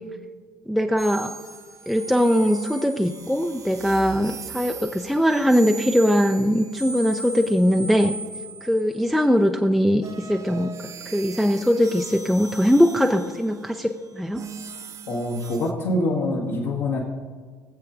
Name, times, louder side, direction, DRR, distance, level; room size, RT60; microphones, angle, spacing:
voice 1, 0.7-1.3 1.9-8.1 8.6-10.7 11.1-14.4, equal, ahead, 4 dB, 0.5 m, -21 dB
sound 1, 1.0-9.3 10.0-15.7, right 3 dB, 30° right, 0.7 m, -39 dB
voice 2, 15.1-17.0, left 1 dB, 65° left, -6 dB, 1.5 m, -25 dB
20.5 x 7.6 x 2.5 m, 1.5 s
figure-of-eight pair, 55°, 11 cm